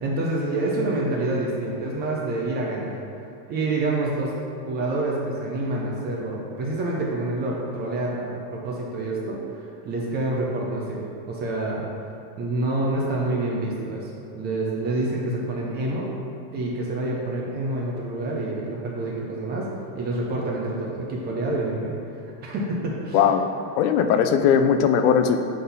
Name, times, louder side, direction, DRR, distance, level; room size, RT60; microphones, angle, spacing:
voice 1, 0.0-2.9 3.5-4.3 4.7-9.4 9.8-11.9 12.4-16.1 16.5-19.7 20.0-21.9 22.4-23.2, right 2 dB, 20° right, -3 dB, 0.4 m, -27 dB
voice 2, 23.1-23.5 23.8-25.4, left 7 dB, 65° left, 8 dB, 0.5 m, -19 dB
7.5 x 4.0 x 4.0 m, 2.5 s
supercardioid pair, 160°, 48 cm